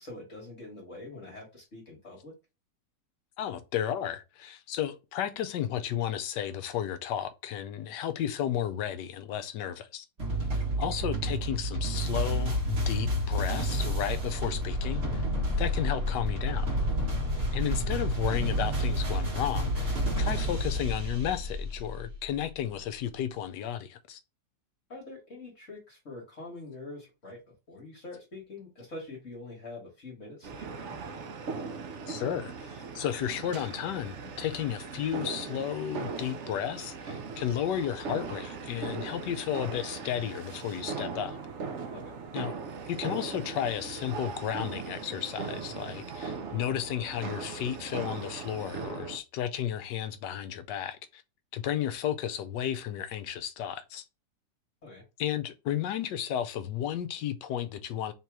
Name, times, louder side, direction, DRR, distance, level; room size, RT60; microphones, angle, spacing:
voice 1, 0.0-2.3 10.4-10.6 17.2-17.5 24.9-27.4 27.7-31.0 41.9-42.2 54.8-55.0, left 2 dB, 45° left, 1.7 m, -45 dB
voice 2, 3.4-10.0 10.8-15.2 15.6-16.7 17.5-24.2 32.1-41.4 42.3-42.5 42.9-51.2 51.5-54.0 55.2-58.1, left 10 dB, 75° left, 1.2 m, -33 dB
sound 1, 10.2-22.4, equal, 40° right, 1.8 m, -30 dB
sound 2, 30.4-49.2, right 5 dB, 70° right, 0.7 m, -39 dB
3.8 x 3.0 x 4.6 m
omnidirectional pair, 1.9 m